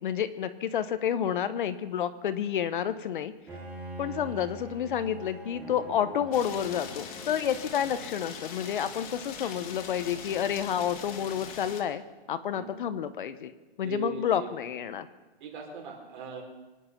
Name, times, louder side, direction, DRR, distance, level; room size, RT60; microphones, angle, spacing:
voice 1, 0.0-3.3 4.0-12.0 12.3-13.5 13.8-15.1, left 9 dB, 50° left, 12 dB, 1.0 m, -30 dB
Bowed string instrument, 3.5-8.2, right 1 dB, 5° right, 3.2 m, -44 dB
sound 1, 6.3-11.8, left 7 dB, 35° left, 2.1 m, -42 dB
voice 2, 13.8-14.5 15.4-16.4, right 7 dB, 50° right, 3 dB, 4.3 m, -39 dB
25.0 x 9.8 x 5.9 m, 1.2 s
hypercardioid pair, 155°, 33 cm